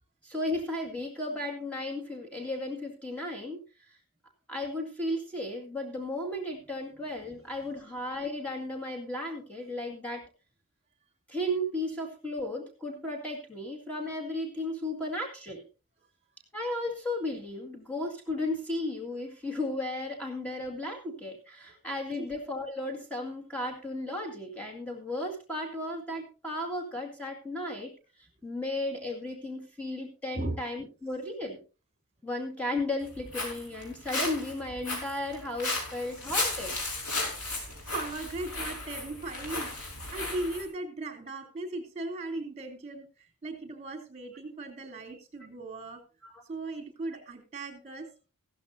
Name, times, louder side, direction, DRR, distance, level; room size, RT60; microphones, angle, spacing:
voice 1, 0.2-4.0 4.5-10.3 11.3-15.6 16.5-31.6 32.2-36.8 46.2-46.4 47.1-47.2, left 1 dB, 5° left, 0 dB, 2.0 m, -35 dB
Walk footsteps, 33.0-40.7, left 2 dB, 85° left, 5.2 m, -35 dB
voice 2, 37.9-39.7 40.1-46.0 46.5-48.1, right 2 dB, 30° right, 5 dB, 2.9 m, -38 dB
15.5 x 13.5 x 2.7 m, 0.33 s
head